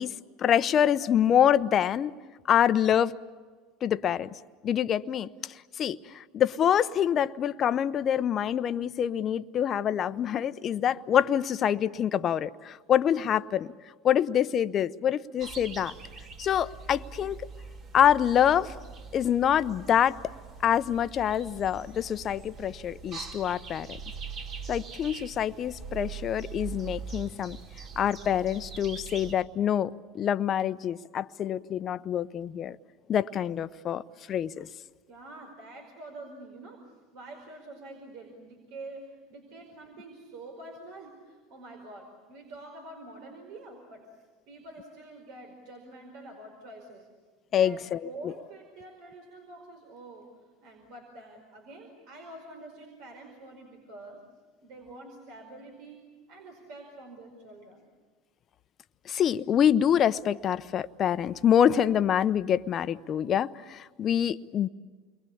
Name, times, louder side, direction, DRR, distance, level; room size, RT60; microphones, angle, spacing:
voice 1, 0.0-2.1 2.5-3.2 3.8-4.3 4.6-13.7 14.0-15.9 16.4-17.4 17.9-18.7 19.1-20.2 20.6-24.0 24.7-27.6 28.0-32.8 33.1-34.0 34.3-34.7 47.5-48.3 59.1-64.7, left 9 dB, 40° left, 0.8 m, -26 dB
sound 1, 15.4-29.3, right 5 dB, 45° right, 2.8 m, -42 dB
voice 2, 35.1-47.1 47.6-50.3 50.6-54.2 54.6-57.9, right 2 dB, 65° right, 5.0 m, -47 dB
29.0 x 22.5 x 8.6 m
supercardioid pair, 95°, 0 cm